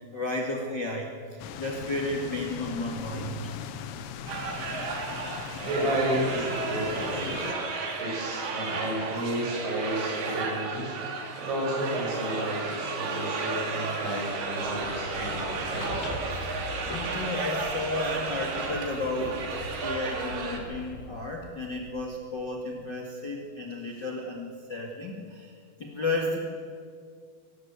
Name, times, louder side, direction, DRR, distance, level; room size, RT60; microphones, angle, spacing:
voice 1, 0.0-3.6 5.5-5.7 16.2-26.4, left 2 dB, 45° left, -1 dB, 1.5 m, -33 dB
sound 1, 1.4-7.5, left 8 dB, 85° left, 3.3 m, -39 dB
sound 2, 4.3-20.6, right 4 dB, 65° right, 4.4 m, -33 dB
voice 2, 5.6-7.5 8.0-11.0 11.4-16.1, right 1 dB, 80° right, -2 dB, 9.7 m, -31 dB
sound 3, 14.5-22.4, left 2 dB, 65° left, 4.1 m, -41 dB
23.5 x 18.5 x 8.2 m, 2.1 s
omnidirectional pair, 5.1 m